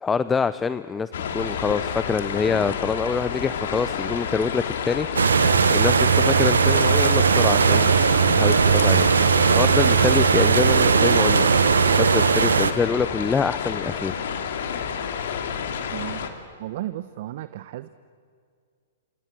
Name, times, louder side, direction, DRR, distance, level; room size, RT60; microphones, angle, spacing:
voice 1, 0.0-7.9 8.2-9.0 9.4-11.5 12.0-14.2, left 5 dB, 15° left, 14 dB, 0.6 m, -25 dB
sound 1, 1.1-16.3, left 7 dB, 65° left, 2.6 m, -30 dB
sound 2, 5.2-12.7, right 6 dB, 85° right, 1.3 m, -18 dB
voice 2, 15.9-16.3 16.6-17.9, right 14 dB, 55° right, 13 dB, 0.9 m, -34 dB
28.0 x 25.0 x 7.6 m, 2.2 s
hypercardioid pair, 120°, 0 cm